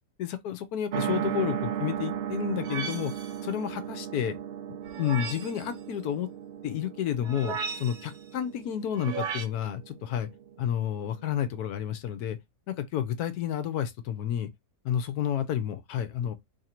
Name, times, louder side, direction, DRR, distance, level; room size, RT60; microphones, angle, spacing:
voice 1, 0.2-3.1 3.4-4.4 5.0-6.3 6.6-10.3 10.6-12.4 12.7-14.5 14.8-16.4, left 10 dB, 75° left, 1.1 m, -30 dB
sound 1, 0.9-11.8, right 9 dB, 60° right, 0.6 m, -36 dB
sound 2, 2.6-3.4 4.9-5.6 7.2-8.2 9.0-9.5, right 5 dB, 80° right, 1.3 m, -36 dB
3.2 x 2.6 x 4.2 m
omnidirectional pair, 1.7 m